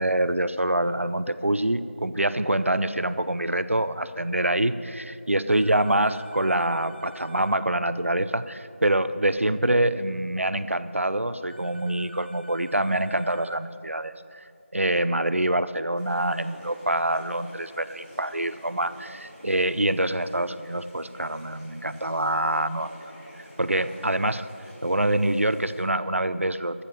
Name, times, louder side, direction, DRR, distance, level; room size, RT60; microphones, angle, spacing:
voice 1, 0.0-14.4 14.7-23.1 23.6-24.5 24.8-26.8, right 1 dB, 70° right, 13 dB, 0.6 m, -25 dB
sound 1, 5.5-7.6 11.5-13.6, equal, 45° left, 1.1 m, -50 dB
sound 2, 15.9-25.8, equal, 10° left, 3.7 m, -48 dB
13.0 x 7.4 x 7.8 m, 2.7 s
figure-of-eight pair, 175°, 7 cm